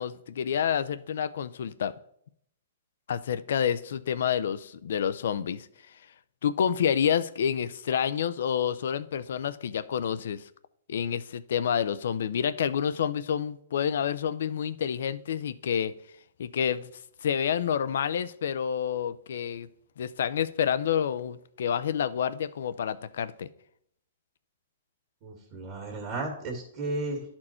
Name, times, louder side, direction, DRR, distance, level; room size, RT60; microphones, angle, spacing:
voice 1, 0.0-1.9 3.1-5.7 6.4-10.5 10.9-15.9 16.4-16.9 17.2-19.7 20.0-23.5, left 8 dB, 70° left, 15 dB, 0.5 m, -28 dB
voice 2, 25.2-27.2, right 2 dB, 40° right, 0 dB, 1.9 m, -34 dB
11.0 x 4.4 x 4.4 m, 0.70 s
hypercardioid pair, 145°, 0 cm